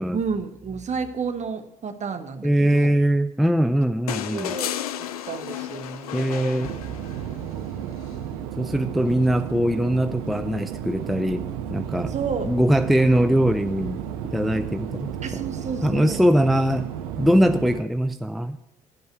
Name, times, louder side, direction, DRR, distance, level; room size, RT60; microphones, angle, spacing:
voice 1, 0.1-2.9 4.3-6.6 7.4-8.0 12.1-12.5 15.2-16.2, right 5 dB, 40° right, 9 dB, 1.1 m, -32 dB
voice 2, 2.4-4.5 6.1-6.8 8.6-11.4 11.7-12.1 12.4-14.0 14.3-15.1 15.8-16.9 17.2-18.6, equal, ahead, 9 dB, 0.4 m, -21 dB
sound 1, 4.1-7.4 8.9-9.0, left 11 dB, 90° left, 0.4 m, -32 dB
sound 2, 6.6-17.8, right 9 dB, 80° right, 0.6 m, -33 dB
10.5 x 5.4 x 8.0 m, 0.92 s
hypercardioid pair, 50°, 18 cm